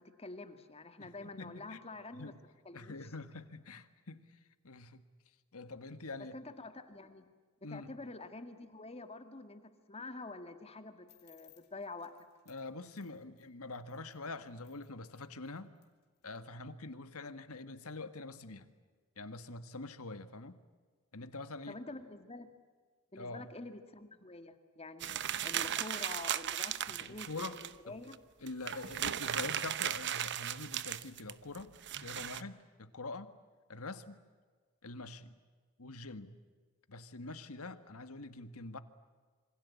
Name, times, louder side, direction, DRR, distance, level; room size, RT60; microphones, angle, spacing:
voice 1, 0.0-2.3 2.7-3.0 6.3-7.3 7.7-12.1 21.7-22.5 23.1-28.2, left 2 dB, 25° left, 8 dB, 2.0 m, -47 dB
voice 2, 1.0-1.8 2.1-2.4 2.7-4.4 4.6-5.0 5.5-6.4 7.6-7.9 12.5-15.7 16.2-18.7 19.2-20.6 21.1-21.8 23.1-23.4 27.0-28.0 28.4-31.7 32.0-33.3 33.7-34.2 34.8-35.4 35.8-36.3 36.9-38.8, left 3 dB, 70° left, 11 dB, 1.8 m, -45 dB
sound 1, 11.1-16.3, left 12 dB, 50° left, 3.4 m, -68 dB
sound 2, 25.0-27.7 28.1-28.2 28.5-32.4, right 10 dB, 55° right, 0.9 m, -36 dB
27.5 x 25.5 x 8.5 m, 1.5 s
head